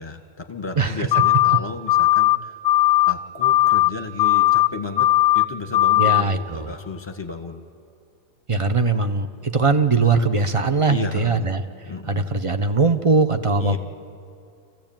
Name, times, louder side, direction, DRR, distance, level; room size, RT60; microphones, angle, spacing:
voice 1, 0.0-2.6 3.1-5.1 5.3-7.6 10.9-11.5 11.8-12.3 13.6-13.8, left 4 dB, 15° left, 5 dB, 1.5 m, -33 dB
voice 2, 0.8-1.1 6.0-6.7 8.5-11.6 12.1-13.8, right 4 dB, 30° right, 9 dB, 0.6 m, -20 dB
sound 1, 1.1-1.6 1.9-2.4 2.6-3.1 3.4-3.9 4.2-4.7 5.0-5.4 5.7-6.2, left 15 dB, 60° left, 0.9 m, -17 dB
26.0 x 15.5 x 8.9 m, 2.4 s
omnidirectional pair, 1.7 m